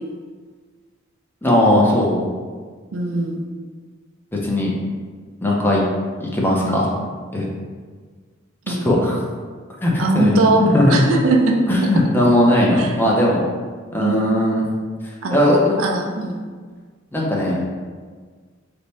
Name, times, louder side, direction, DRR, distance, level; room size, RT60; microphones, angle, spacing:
voice 1, 1.4-2.3 4.4-4.7 5.4-5.8 6.2-6.9 7.3-7.4 8.7-9.2 9.8-11.1 11.7-13.4 13.9-14.6 15.3-15.8 17.1-17.7, left 1 dB, 10° left, -4 dB, 0.5 m, -18 dB
voice 2, 2.9-3.4 8.7-8.9 10.0-11.6 12.8-12.9 14.0-14.2 15.2-16.4, right 3 dB, 75° right, 2 dB, 0.4 m, -20 dB
3.4 x 2.1 x 4.0 m, 1.5 s
head